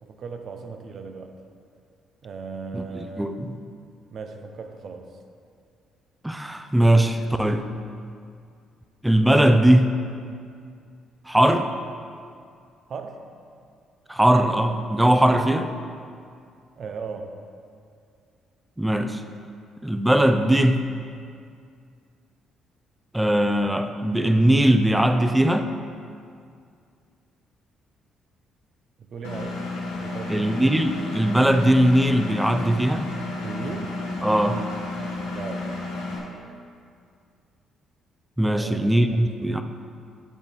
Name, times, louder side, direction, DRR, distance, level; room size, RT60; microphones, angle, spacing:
voice 1, 0.0-1.4 2.2-3.5 4.1-5.2 12.9-13.3 16.8-17.3 29.0-30.5 33.4-34.0 35.3-35.8 38.4-39.6, right 5 dB, 55° right, 5 dB, 0.6 m, -37 dB
voice 2, 2.7-3.5 6.2-7.6 9.0-9.9 11.3-11.7 14.1-15.7 18.8-19.2 19.8-20.8 23.1-25.7 30.3-33.1 34.2-34.6 38.4-39.6, right 1 dB, 10° right, 7 dB, 0.6 m, -20 dB
Engine, 29.2-36.2, left 2 dB, 80° left, 1.0 m, -32 dB
10.5 x 4.0 x 3.5 m, 2.3 s
hypercardioid pair, 50°, 0 cm